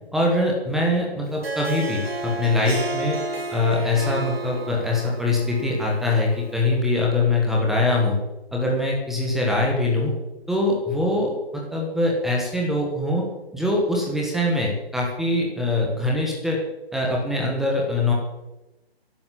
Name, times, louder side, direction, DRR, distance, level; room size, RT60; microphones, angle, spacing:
voice 1, 0.1-3.2 3.5-8.2 8.5-10.1 10.5-13.3 13.5-16.6 16.9-18.1, left 2 dB, ahead, -2 dB, 1.2 m, -23 dB
Harp, 1.2-6.7, right 2 dB, 65° right, 2.9 m, -32 dB
14.5 x 11.0 x 7.6 m, 1.0 s
hypercardioid pair, 165°, 32 cm